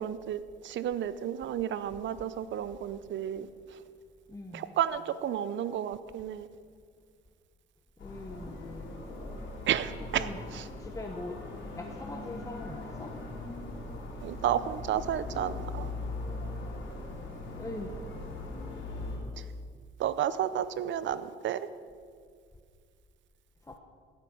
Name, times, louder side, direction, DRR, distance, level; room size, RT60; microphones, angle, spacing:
voice 1, 0.0-3.8 4.5-6.5 9.7-10.3 10.5-10.6 14.2-15.9 19.4-19.5 20.0-21.7, right 10 dB, 70° right, 14 dB, 0.7 m, -32 dB
voice 2, 4.3-4.7 8.0-8.9 10.1-10.4 10.8-11.4 11.8-13.1 17.6-18.0 23.6-23.8, left 2 dB, 15° left, 2 dB, 1.1 m, -41 dB
sound 1, 8.0-19.2, left 2 dB, 75° left, 3.8 m, -40 dB
17.0 x 8.3 x 6.3 m, 2.1 s
cardioid pair, 90°, 20 cm